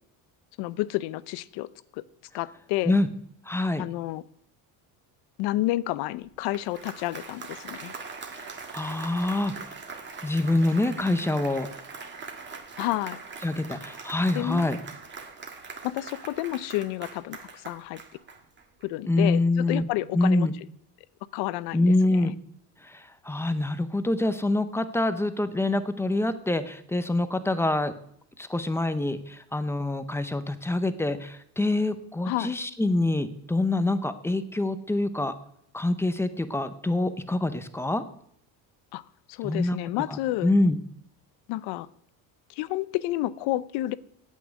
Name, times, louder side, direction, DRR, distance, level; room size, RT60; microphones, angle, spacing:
voice 1, 0.6-1.7 1.9-2.0 2.3-3.0 3.8-4.2 5.4-7.9 12.8-13.2 14.3-14.7 15.8-18.0 18.8-20.5 21.3-22.3 32.3-32.5 38.9-39.0 39.3-40.5 41.5-41.9 42.5-43.9, left 16 dB, 80° left, 18 dB, 0.7 m, -30 dB
voice 2, 3.5-3.8 8.3-8.4 8.7-9.5 10.2-11.7 13.4-14.8 19.1-19.8 20.1-20.5 21.7-22.3 22.8-27.9 28.4-35.3 35.7-38.0 39.4-39.8 40.1-40.8, left 2 dB, 5° left, 11 dB, 0.6 m, -25 dB
Applause, 6.3-18.8, right 4 dB, 30° right, 1.7 m, -42 dB
8.5 x 8.4 x 9.2 m, 0.71 s
cardioid pair, 145°, 39 cm